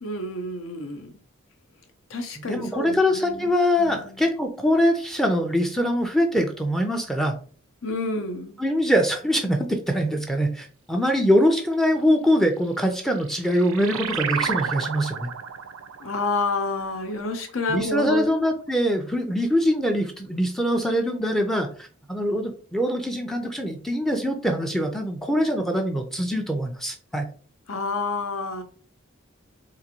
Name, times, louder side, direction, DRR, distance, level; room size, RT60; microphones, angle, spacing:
voice 1, 0.0-1.1 2.1-3.5 3.8-4.2 7.8-8.6 16.0-18.3 27.7-28.6, left 2 dB, 75° left, 0.7 m, -29 dB
voice 2, 2.4-7.3 8.6-15.3 17.7-27.2, equal, ahead, 0.4 m, -23 dB
sound 1, 12.9-18.0, right 7 dB, 80° right, 0.4 m, -32 dB
3.9 x 2.6 x 2.8 m
head